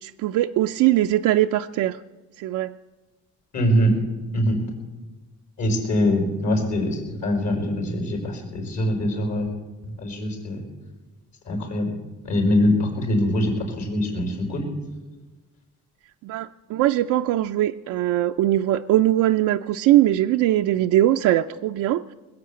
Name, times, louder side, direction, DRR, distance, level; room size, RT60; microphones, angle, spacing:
voice 1, 0.0-2.0 2.4-2.7 16.2-22.0, right 14 dB, 90° right, 5 dB, 0.5 m, -21 dB
voice 2, 3.5-3.9 4.3-4.6 5.6-9.5 9.8-10.6 11.5-11.9 12.2-14.6, equal, 65° left, 1 dB, 5.0 m, -23 dB
20.5 x 7.7 x 8.5 m, 1.2 s
cardioid pair, 90°, 30 cm